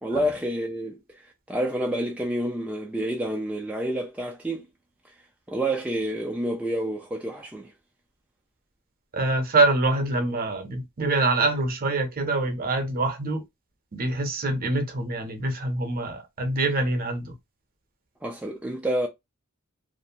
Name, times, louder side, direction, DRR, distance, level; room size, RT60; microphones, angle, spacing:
voice 1, 0.0-1.0 1.5-4.7 5.5-7.7 18.2-19.1, right 1 dB, 5° right, 0.3 m, -28 dB
voice 2, 9.1-13.4 13.9-17.3, right 2 dB, 45° right, 0.7 m, -25 dB
2.5 x 2.1 x 2.7 m
head